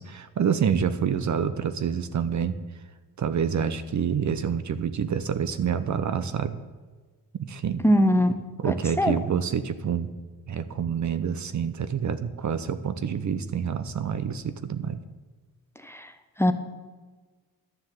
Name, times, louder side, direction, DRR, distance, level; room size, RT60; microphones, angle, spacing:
voice 1, 0.0-2.6 3.2-6.6 7.4-7.8 8.6-10.1 10.5-15.0, right 7 dB, 45° right, 12 dB, 0.8 m, -27 dB
voice 2, 7.8-8.3 8.7-9.2 15.8-16.1 16.4-16.5, equal, 5° left, 8 dB, 1.0 m, -21 dB
12.0 x 7.2 x 7.7 m, 1.3 s
cardioid pair, 90°, 39 cm